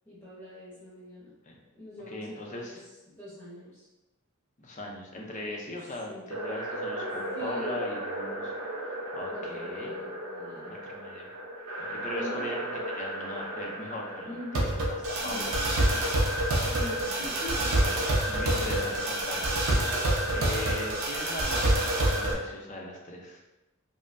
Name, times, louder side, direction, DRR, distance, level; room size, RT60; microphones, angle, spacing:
voice 1, 0.0-1.3 1.7-3.9 6.1-6.3 7.3-7.8 9.3-10.7 12.1-12.5 14.2-14.7 15.2-15.5 16.4-17.8, left 1 dB, 10° left, -10 dB, 1.0 m, -42 dB
voice 2, 2.1-2.8 4.6-8.5 8.9-9.9 10.9-11.3 11.8-14.8 15.2-16.3 17.0-19.6 20.3-23.4, left 1 dB, 35° left, -1 dB, 0.6 m, -39 dB
sound 1, 6.3-22.3, right 1 dB, 70° right, 0.8 m, -29 dB
5.2 x 2.1 x 2.6 m, 1.0 s
head